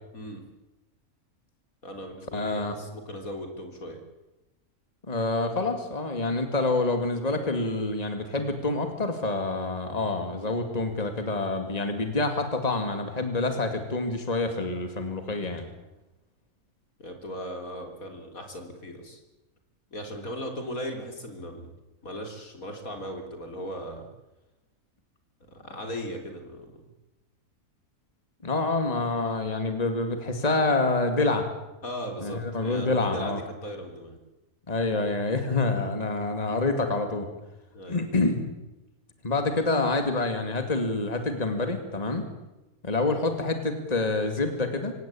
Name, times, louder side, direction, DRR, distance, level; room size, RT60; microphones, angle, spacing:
voice 1, 1.8-4.0 17.0-19.2 19.9-21.7 22.0-24.1 25.5-26.7 31.8-34.2 37.7-38.0, equal, 70° left, 4 dB, 4.2 m, -37 dB
voice 2, 2.3-2.8 5.1-15.7 28.4-31.5 32.2-33.4 34.7-37.3 37.9-38.4 39.2-42.3 42.8-44.9, left 2 dB, 25° left, 7 dB, 2.5 m, -27 dB
25.5 x 17.5 x 8.7 m, 1.0 s
omnidirectional pair, 1.5 m